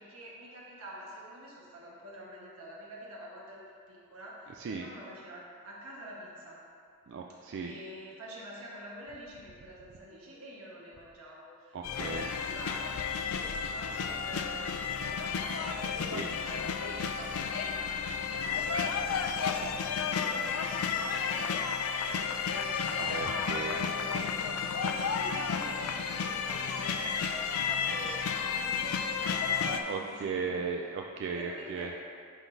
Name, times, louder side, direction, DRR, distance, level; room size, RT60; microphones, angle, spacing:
voice 1, 0.0-3.6 3.9-6.6 7.4-24.4 24.8-30.6 31.3-31.9, equal, 85° right, -5 dB, 1.4 m, -47 dB
voice 2, 7.1-7.7 11.7-12.3 16.1-16.3 23.0-23.9 29.6-31.9, right 5 dB, 60° right, 1 dB, 0.3 m, -36 dB
sound 1, 11.8-29.8, left 6 dB, 85° left, 0.4 m, -32 dB
sound 2, 24.5-30.2, left 1 dB, 50° left, 1.1 m, -52 dB
10.5 x 3.8 x 2.7 m, 2.2 s
head